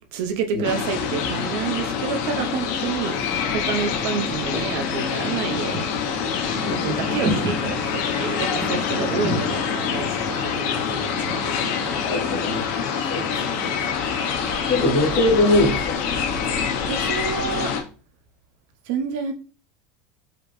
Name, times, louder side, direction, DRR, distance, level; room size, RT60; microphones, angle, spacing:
voice 1, 0.1-3.1 3.5-5.9 6.7-11.5 13.6-13.7 14.8-15.1 16.5-17.7 18.9-19.3, right 6 dB, 60° right, 7 dB, 0.7 m, -29 dB
sound 1, 0.6-17.8, left 6 dB, 55° left, 0.7 m, -26 dB
sound 2, 3.1-15.5 16.0-16.8, right 1 dB, 25° right, 1.2 m, -35 dB
voice 2, 6.6-6.9 12.0-12.6 13.1-13.8 14.6-16.0, left 2 dB, 30° left, -6 dB, 1.6 m, -22 dB
4.9 x 2.9 x 3.1 m, 0.37 s
supercardioid pair, 170°, 0 cm